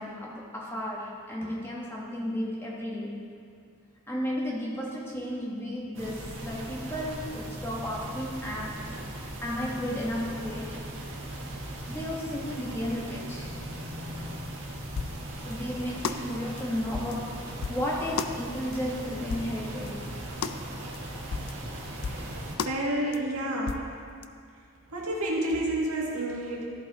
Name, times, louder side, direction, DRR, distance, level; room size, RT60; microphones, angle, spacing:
voice 1, 0.0-3.2 4.1-8.9 9.2-10.8 11.9-13.6 15.4-20.2, equal, 10° left, -4 dB, 1.2 m, -33 dB
sound 1, 5.9-22.6, right 1 dB, 55° right, 1.6 m, -38 dB
sound 2, 15.0-15.2 15.5-15.6 16.0-16.2 16.6-16.7 16.9-17.2 17.6-17.8 18.2-18.3 18.7-18.8 19.3-19.5 19.9-20.0 20.4-20.6 20.9-21.0 21.3-21.5 22.0-22.3 22.6-22.8 23.1-23.2 23.7-23.9 24.2-24.3, left 5 dB, 65° left, 0.4 m, -33 dB
voice 2, 22.6-24.0 24.5-26.7, right 1 dB, 90° right, -3 dB, 1.7 m, -30 dB
13.5 x 5.7 x 4.0 m, 2.2 s
head